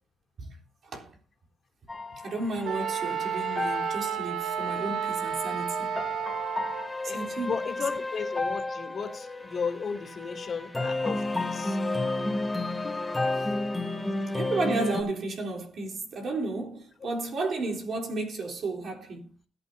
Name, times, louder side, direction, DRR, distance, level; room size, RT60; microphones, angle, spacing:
voice 1, 0.8-1.2 2.1-5.9 7.0-7.5 13.4-13.5 14.3-19.3, right 3 dB, 55° right, 3.7 m, -33 dB
sound 1, 1.9-15.0, left 2 dB, 10° left, 2.7 m, -32 dB
Wind instrument woodwind instrument, 2.6-6.9, right 8 dB, 80° right, 0.6 m, -31 dB
voice 2, 7.1-11.8 17.0-17.1, left 5 dB, 45° left, 2.7 m, -34 dB
20.5 x 8.8 x 2.8 m
cardioid pair, 100°, 0 cm